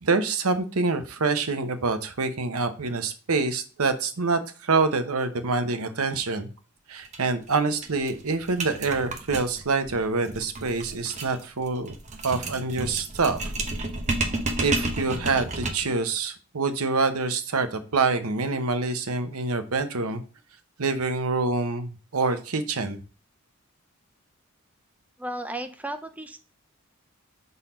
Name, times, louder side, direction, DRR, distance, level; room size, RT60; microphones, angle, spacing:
voice 1, 0.0-6.5 6.9-11.9 12.2-13.5 14.6-20.2 20.8-23.0, right 4 dB, 80° right, 9 dB, 0.9 m, -26 dB
sound 1, 7.1-7.2 7.5-7.6 7.8-16.0, right 2 dB, 30° right, 0.9 m, -31 dB
voice 2, 25.2-26.4, right 1 dB, 5° right, 7 dB, 0.4 m, -34 dB
5.7 x 4.0 x 5.0 m, 0.36 s
head